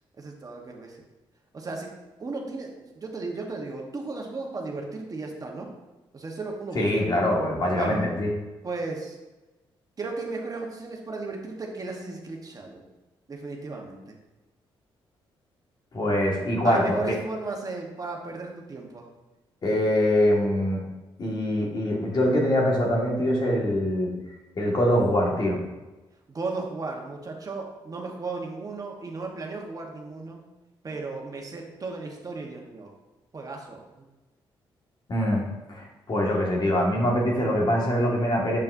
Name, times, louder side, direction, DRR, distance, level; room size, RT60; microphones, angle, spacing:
voice 1, 0.2-1.0 1.5-1.9 2.2-5.7 6.1-7.1 7.8-8.1 8.6-9.2 10.0-12.8 13.3-14.1 16.6-19.1 26.3-30.4 30.8-32.9 33.3-34.1, right 3 dB, 40° right, 1 dB, 1.1 m, -35 dB
voice 2, 6.8-8.3 15.9-17.1 19.6-20.8 21.2-24.1 24.6-25.6 35.1-35.4 35.7-38.6, left 1 dB, 45° left, -2 dB, 1.7 m, -23 dB
7.1 x 5.5 x 2.6 m, 1.1 s
cardioid pair, 70°, 10 cm